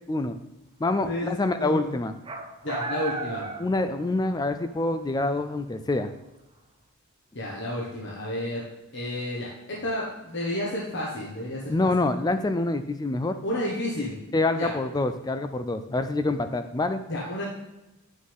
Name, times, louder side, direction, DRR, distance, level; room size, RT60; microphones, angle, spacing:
voice 1, 0.8-2.1 3.6-6.1 11.7-13.4 14.3-17.0, left 2 dB, 15° left, 9 dB, 0.3 m, -26 dB
voice 2, 1.6-1.9 2.6-3.4 7.3-8.6 8.9-11.9 13.4-14.2 14.5-14.7 17.1-17.4, left 1 dB, 50° left, -4 dB, 1.4 m, -31 dB
sound 1, 2.3-4.5 4.7-4.8 6.0-6.1, right 3 dB, 20° right, 0.6 m, -34 dB
9.3 x 6.3 x 3.6 m, 0.99 s
head